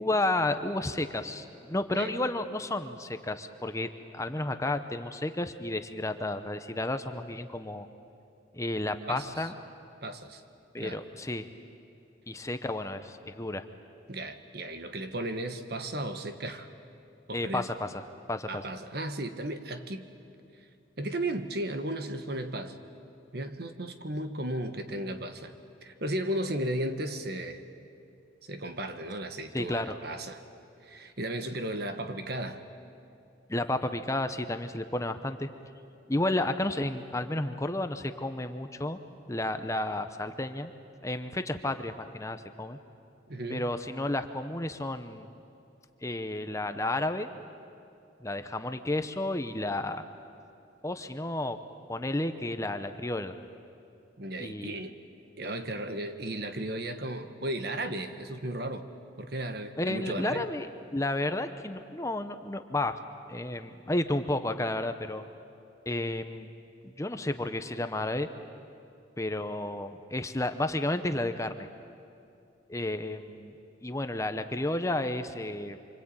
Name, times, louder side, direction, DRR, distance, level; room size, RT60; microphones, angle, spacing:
voice 1, 0.0-7.9 8.5-9.5 10.7-11.5 12.3-13.6 17.3-18.0 18.3-18.6 29.5-30.0 33.5-35.5 36.1-39.0 39.3-40.7 41.0-42.8 43.5-45.3 46.0-47.3 48.2-50.1 50.8-51.6 51.9-53.3 54.4-54.8 59.8-60.7 60.9-63.0 63.3-65.3 65.9-66.5 66.8-68.3 69.2-71.7 72.7-73.5 73.8-75.8, left 1 dB, 15° left, 9 dB, 0.8 m, -32 dB
voice 2, 9.1-9.5 10.0-10.4 10.8-11.0 14.1-16.7 17.3-17.7 18.5-20.1 21.0-22.8 23.3-25.5 25.8-27.6 28.4-30.4 30.8-32.6 43.3-43.7 54.2-54.9 55.4-58.9 59.2-60.5, right 1 dB, 55° right, 8 dB, 1.6 m, -35 dB
26.5 x 25.0 x 8.9 m, 2.6 s
head